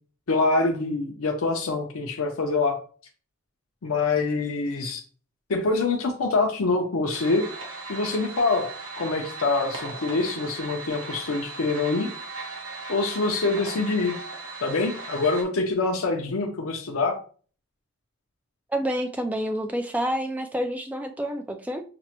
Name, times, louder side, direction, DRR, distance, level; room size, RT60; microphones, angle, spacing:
voice 1, 0.3-2.8 3.8-5.0 5.5-7.4 7.9-12.1 12.9-14.1 14.6-17.2, left 3 dB, 75° left, 3 dB, 0.5 m, -25 dB
sound 1, 7.1-15.4, right 3 dB, 60° right, 1.1 m, -38 dB
voice 2, 18.7-21.8, equal, 5° right, 5 dB, 0.3 m, -28 dB
5.9 x 2.0 x 2.9 m, 0.41 s
head